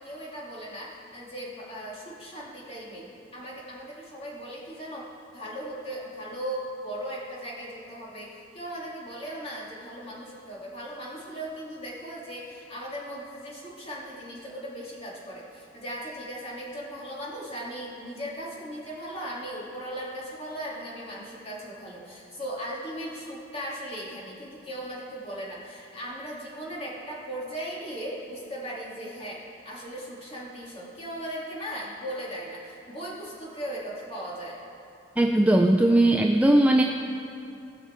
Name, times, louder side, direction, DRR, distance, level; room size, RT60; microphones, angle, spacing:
voice 1, 0.0-5.1 5.3-34.6, equal, 30° left, -5 dB, 2.3 m, -38 dB
voice 2, 35.2-36.8, right 1 dB, 5° right, 1 dB, 0.3 m, -19 dB
18.5 x 6.2 x 4.4 m, 2.8 s
head